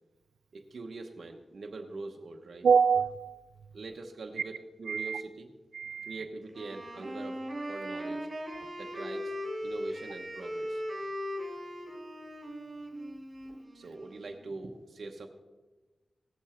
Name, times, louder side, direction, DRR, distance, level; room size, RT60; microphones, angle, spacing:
voice 1, 0.5-2.7 3.7-5.5 6.0-7.4 7.7-8.3 8.8-9.4 9.6-10.8 13.7-15.3, right 3 dB, 65° right, 2 dB, 0.9 m, -43 dB
voice 2, 2.6-3.4 4.9-5.2 5.7-6.2, right 6 dB, 85° right, 14 dB, 0.3 m, -26 dB
Wind instrument woodwind instrument, 6.5-14.4, equal, 35° right, 3.1 m, -39 dB
17.5 x 7.2 x 4.3 m, 1.2 s
cardioid pair, 70°, 0 cm